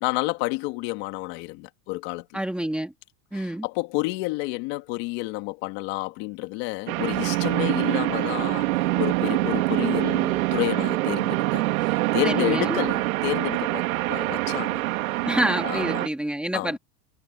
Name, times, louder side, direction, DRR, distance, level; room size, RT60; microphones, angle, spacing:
voice 1, 0.0-2.4 3.3-13.8 14.1-14.9 15.6-16.0 16.5-16.7, left 22 dB, 45° left, 2.1 m, -30 dB
voice 2, 2.3-2.9 3.3-3.6 12.2-12.8 15.3-16.8, right 1 dB, 5° right, 1.7 m, -27 dB
sound 1, 6.9-16.1, right 18 dB, 85° right, 2.3 m, -25 dB
supercardioid pair, 170°, 41 cm